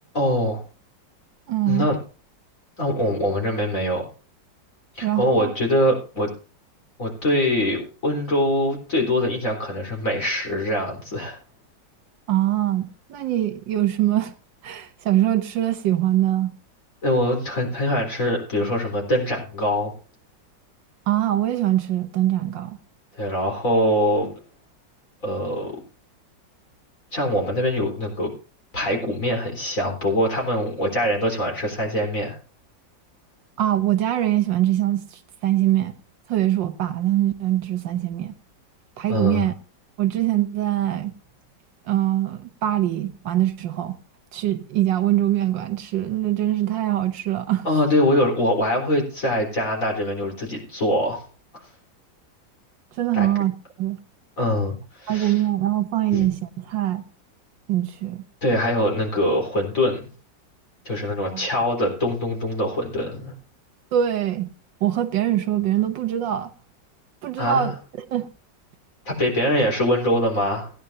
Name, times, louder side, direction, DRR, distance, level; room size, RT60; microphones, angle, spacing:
voice 1, 0.1-0.6 1.7-2.0 2.8-4.1 5.0-6.3 7.0-11.4 17.0-19.9 23.2-24.3 25.2-25.7 27.1-28.3 28.7-32.4 39.1-39.5 47.6-51.3 51.5-51.6 53.1-53.3 54.4-55.3 56.1-56.3 58.4-60.1 60.8-63.3 67.4-67.7 69.1-70.7, left 1 dB, 45° left, 4.4 m, -23 dB
voice 2, 1.5-1.9 5.0-5.5 12.3-14.3 14.6-16.5 21.1-22.8 33.6-35.9 36.3-38.3 39.0-39.5 40.0-41.1 41.9-44.0 44.3-47.7 53.0-53.5 53.8-54.0 55.1-57.0 57.7-58.2 61.3-61.4 63.9-64.5 64.8-66.5 67.2-67.7 68.1-68.3, right 13 dB, 85° right, 1.7 m, -23 dB
18.0 x 10.0 x 2.7 m
omnidirectional pair, 2.0 m